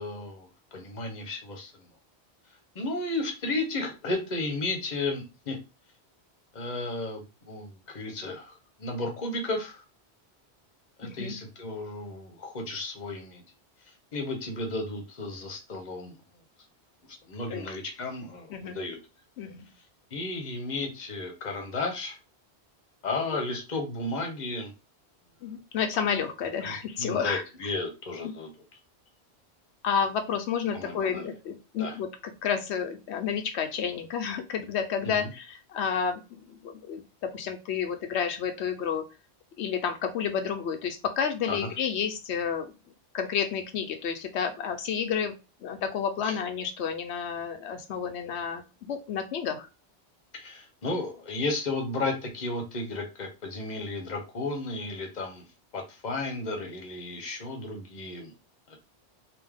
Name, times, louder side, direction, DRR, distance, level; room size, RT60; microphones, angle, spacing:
voice 1, 0.0-1.9 2.7-5.6 6.5-9.8 11.0-13.4 13.9-16.2 17.3-19.0 20.1-22.2 23.0-24.7 26.6-28.5 30.7-31.3 31.8-32.0 35.0-35.3 41.5-41.7 46.2-46.3 50.3-55.4 55.7-58.3 58.7-58.8, left 2 dB, 45° left, 2 dB, 1.1 m, -34 dB
voice 2, 11.0-11.4 17.5-17.7 18.5-18.8 19.4-19.7 25.4-27.7 28.2-28.3 29.8-32.1 32.4-36.2 36.5-37.0 37.3-39.0 39.6-42.7 43.1-45.3 45.6-49.7, left 7 dB, 85° left, 6 dB, 0.9 m, -30 dB
3.4 x 2.8 x 3.6 m, 0.28 s
omnidirectional pair, 1.1 m